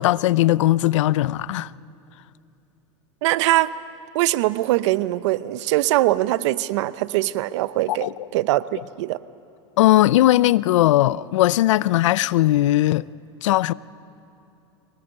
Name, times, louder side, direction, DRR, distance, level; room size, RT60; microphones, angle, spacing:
voice 1, 0.0-1.7 7.9-8.1 9.8-13.0 13.4-13.7, left 15 dB, 85° left, 0.5 m, -18 dB
voice 2, 3.2-3.7 4.1-9.2, right 16 dB, 75° right, 0.7 m, -22 dB
23.5 x 19.0 x 8.9 m
supercardioid pair, 110°, 15 cm